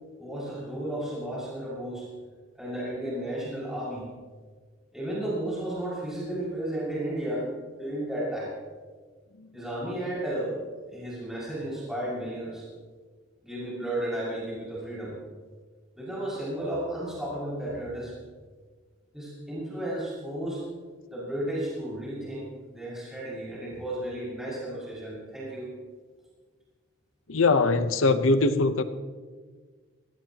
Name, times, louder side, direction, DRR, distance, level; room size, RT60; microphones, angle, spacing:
voice 1, 0.2-2.1 2.5-4.1 4.9-7.5 7.8-8.5 9.5-10.6 10.9-12.6 13.4-15.1 16.0-18.1 19.1-20.6 21.1-25.7, right 1 dB, ahead, 6.3 m, -33 dB
voice 2, 27.3-28.8, left 3 dB, 80° left, 0.9 m, -22 dB
24.5 x 18.0 x 3.0 m
head